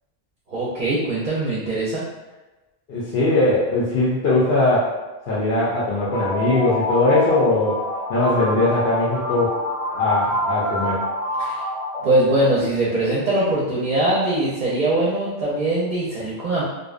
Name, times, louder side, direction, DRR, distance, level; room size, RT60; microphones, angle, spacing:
voice 1, 0.5-2.0 11.4-11.6 12.0-16.6, right 1 dB, 55° right, -7 dB, 0.6 m, -21 dB
voice 2, 2.9-4.9 5.2-7.8 8.1-9.6 9.9-11.0, left 2 dB, 75° left, -8 dB, 0.8 m, -20 dB
sound 1, 5.9-12.7, equal, ahead, 0.3 m, -27 dB
2.5 x 2.0 x 2.4 m, 1.1 s
omnidirectional pair, 1.0 m